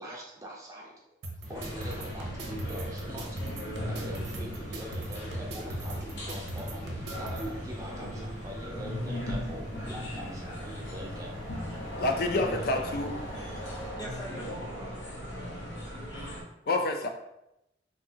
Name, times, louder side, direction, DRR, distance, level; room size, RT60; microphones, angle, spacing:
voice 1, 0.0-3.4 3.7-11.5 12.4-12.8, equal, 20° right, -2 dB, 0.4 m, -43 dB
sound 1, 1.2-7.4, right 1 dB, 75° right, 0.7 m, -39 dB
sound 2, 1.4-13.9, equal, 40° left, 1.3 m, -43 dB
sound 3, 1.5-16.4, equal, 85° left, 0.9 m, -39 dB
voice 2, 12.0-13.1 16.7-17.1, left 2 dB, 55° left, 5 dB, 0.4 m, -28 dB
voice 3, 13.4-16.0, equal, 20° left, -2 dB, 0.7 m, -46 dB
3.4 x 2.7 x 2.7 m, 0.85 s
head